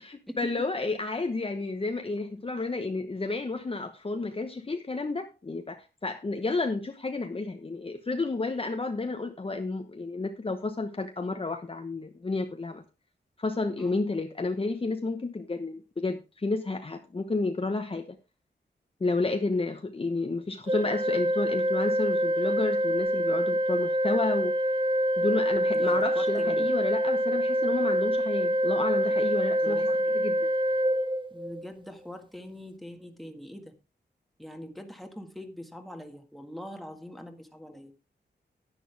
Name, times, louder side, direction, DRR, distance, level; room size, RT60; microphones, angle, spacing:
voice 1, 0.4-12.8 13.4-18.2 19.0-24.5 25.2-29.9 30.1-30.5, left 3 dB, 30° left, 1.0 m, -31 dB
Organ, 20.7-31.7, equal, 25° right, 0.8 m, -26 dB
voice 2, 25.7-26.7 29.6-30.1 31.3-33.8 34.4-37.9, left 1 dB, ahead, 1.8 m, -43 dB
10.5 x 10.0 x 3.4 m
wide cardioid pair, 105°, 18 cm